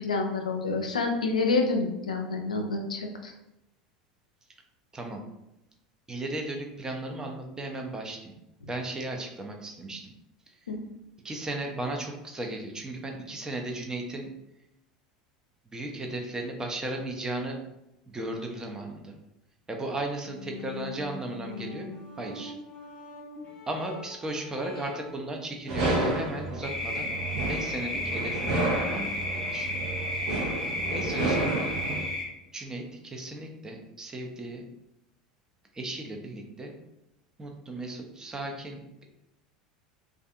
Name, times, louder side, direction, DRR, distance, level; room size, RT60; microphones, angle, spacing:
voice 1, 0.0-3.3 10.7-10.8, left 3 dB, 80° left, 3 dB, 0.4 m, -28 dB
voice 2, 4.9-5.2 6.1-8.4 8.7-10.1 10.5-10.6 11.2-14.3 15.7-17.6 18.1-19.1 19.7-21.9 22.2-22.5 23.7-27.1 27.5-28.6 28.9-29.8 30.4-30.7 30.9-31.7 32.5-34.6 35.7-36.7 37.4-39.0, right 2 dB, 15° right, 2 dB, 0.5 m, -36 dB
sound 1, 20.2-25.3, left 3 dB, 35° left, 0.6 m, -43 dB
sound 2, 25.7-32.0, right 2 dB, 60° right, 0.7 m, -30 dB
sound 3, 26.6-32.2, left 1 dB, 90° right, 0.9 m, -33 dB
2.5 x 2.4 x 2.3 m, 0.89 s
figure-of-eight pair, 80°, 4 cm